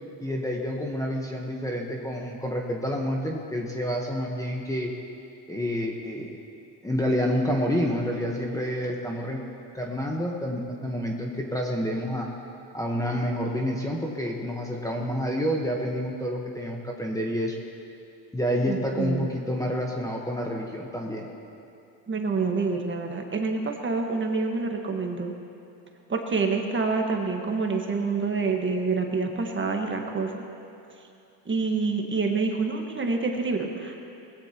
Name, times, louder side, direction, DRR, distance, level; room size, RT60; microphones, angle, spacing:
voice 1, 0.2-4.9 5.5-6.4 6.8-9.4 9.7-12.3 12.7-17.6 18.3-21.3, equal, 5° left, -1 dB, 1.2 m, -28 dB
voice 2, 18.7-19.3 22.1-25.3 26.1-30.4 31.4-34.0, right 4 dB, 25° right, 2 dB, 1.5 m, -27 dB
21.0 x 16.0 x 3.0 m, 2.7 s
supercardioid pair, 110°, 50 cm